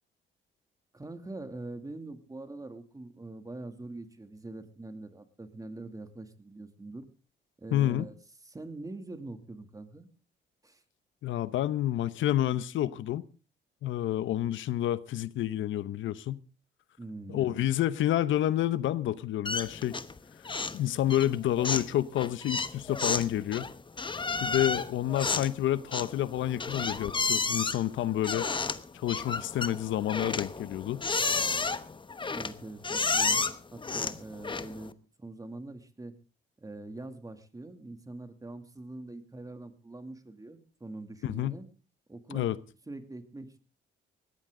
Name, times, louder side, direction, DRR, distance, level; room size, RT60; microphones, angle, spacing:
voice 1, 0.9-7.0 7.6-8.1 8.4-10.1 10.6-10.8 17.0-17.6 32.3-33.4 33.7-36.1 36.6-41.7 42.1-42.5 42.9-43.6, right 2 dB, 15° right, 2.5 m, -43 dB
voice 2, 7.7-8.1 11.2-13.2 13.8-16.4 17.3-20.0 20.7-23.7 24.4-28.5 28.9-31.0 41.2-41.6 42.3-42.6, left 12 dB, 75° left, 0.8 m, -29 dB
sound 1, 19.4-20.2 20.4-20.8 21.1-34.9, left 4 dB, 25° left, 1.1 m, -32 dB
19.0 x 15.0 x 3.8 m
cardioid pair, 90°, 20 cm